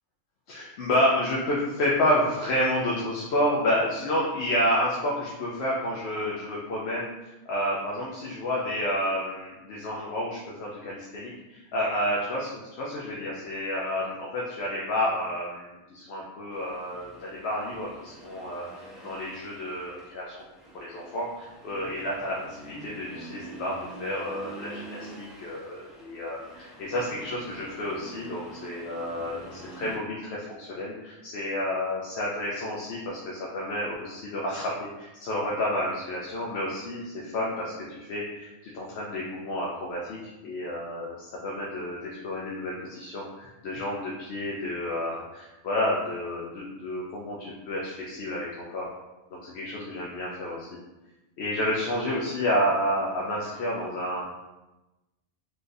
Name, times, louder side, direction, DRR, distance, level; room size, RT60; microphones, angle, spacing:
voice 1, 0.5-7.1 7.5-18.7 19.0-20.3 20.7-23.7 24.0-48.9 49.3-50.7 51.4-54.2, left 1 dB, 70° left, -4 dB, 0.8 m, -30 dB
Accelerating revving vroom, 16.5-30.0, right 2 dB, ahead, 0.3 m, -46 dB
3.7 x 2.4 x 2.6 m, 1.0 s
omnidirectional pair, 1.2 m